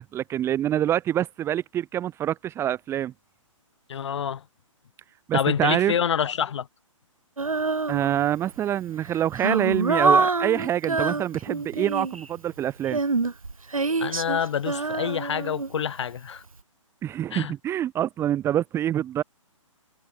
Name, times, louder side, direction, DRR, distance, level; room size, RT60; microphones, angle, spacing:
voice 1, 0.0-3.1 5.3-5.9 7.9-13.0 17.0-19.2, right 11 dB, 15° right, 1.6 m, -26 dB
voice 2, 3.9-4.4 5.3-6.7 14.0-16.4 17.3-17.5, left 8 dB, 55° left, 6.5 m, -27 dB
Female singing, 7.4-8.4 9.0-12.3 12.9-16.0, right 3 dB, 90° right, 4.6 m, -26 dB
hypercardioid pair, 140°, 17 cm